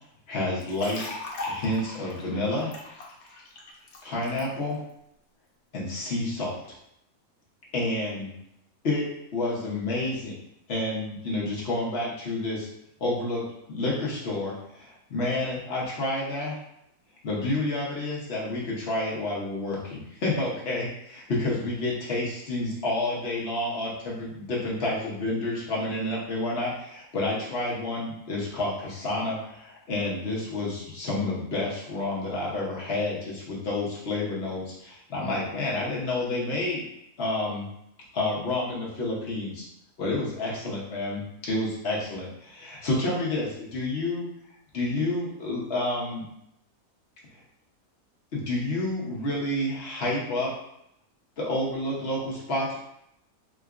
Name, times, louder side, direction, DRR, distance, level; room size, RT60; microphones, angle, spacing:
voice 1, 0.3-1.0 1.5-2.7 4.0-4.8 5.7-6.5 7.7-8.3 8.8-9.1 9.3-10.3 10.7-12.7 13.0-13.4 13.7-16.6 17.2-36.8 37.2-37.7 38.1-39.6 40.0-44.3 44.7-46.3 48.3-50.5 51.4-52.8, left 2 dB, 50° left, -5 dB, 0.9 m, -29 dB
sound 1, 0.6-4.4, left 2 dB, 80° left, 1.1 m, -39 dB
4.6 x 2.2 x 2.3 m, 0.79 s
omnidirectional pair, 1.5 m